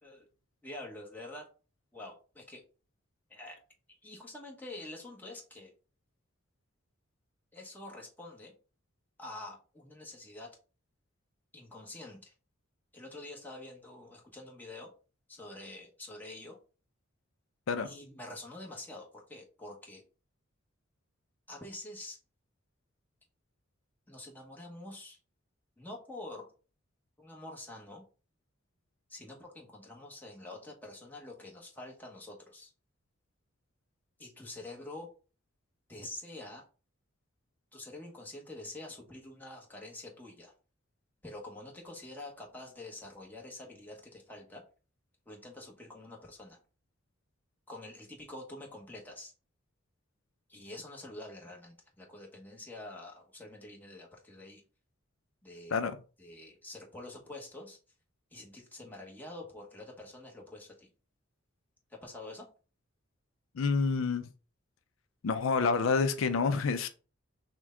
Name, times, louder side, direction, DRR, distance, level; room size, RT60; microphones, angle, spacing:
voice 1, 0.6-1.5 1.9-2.6 3.3-3.6 4.0-5.7 7.5-8.5 9.2-10.5 11.5-12.3 12.9-14.9 15.3-16.6 17.8-20.0 21.5-22.2 24.1-25.2 25.8-26.5 27.2-28.0 29.1-32.7 34.2-35.1 35.9-36.6 37.7-40.5 41.2-44.6 45.3-46.6 47.7-49.3 50.5-54.6 55.4-55.7 56.2-57.8 58.3-60.9 61.9-62.5, left 2 dB, 10° left, 1.1 m, -46 dB
voice 2, 63.5-64.3 65.2-66.9, left 4 dB, 80° left, 0.4 m, -28 dB
6.1 x 2.2 x 3.6 m
head